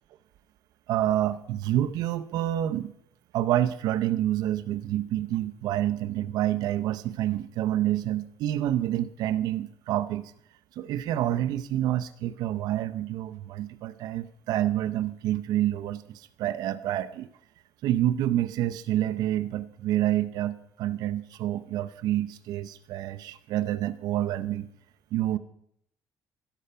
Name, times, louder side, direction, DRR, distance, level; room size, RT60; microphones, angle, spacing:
voice 1, 0.9-2.9 3.3-10.2 10.8-17.3 17.8-24.7 25.1-25.4, right 12 dB, 75° right, 12 dB, 0.7 m, -28 dB
12.5 x 12.0 x 5.6 m, 0.71 s
cardioid pair, 170°, 7 cm